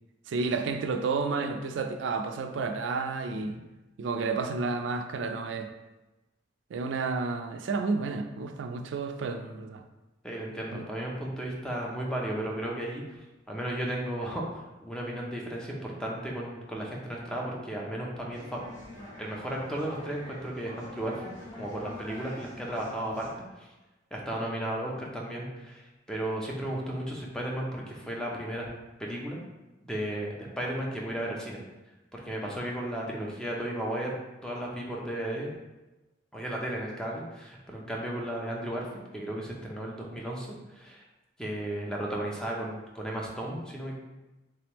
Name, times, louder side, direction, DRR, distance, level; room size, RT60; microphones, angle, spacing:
voice 1, 0.3-3.7 4.0-5.7 6.7-9.8 10.7-10.8, right 4 dB, 80° right, 6 dB, 0.3 m, -31 dB
voice 2, 10.2-13.0 13.5-18.6 19.2-23.3 23.6-23.7 24.1-25.8 26.1-28.7 29.0-29.4 29.9-31.6 32.1-34.1 34.4-35.5 36.3-41.0 41.4-43.9, right 1 dB, 5° left, -3 dB, 0.5 m, -34 dB
sound 1, 18.3-23.4, left 1 dB, 20° left, 1.0 m, -46 dB
3.4 x 3.3 x 3.0 m, 1.1 s
head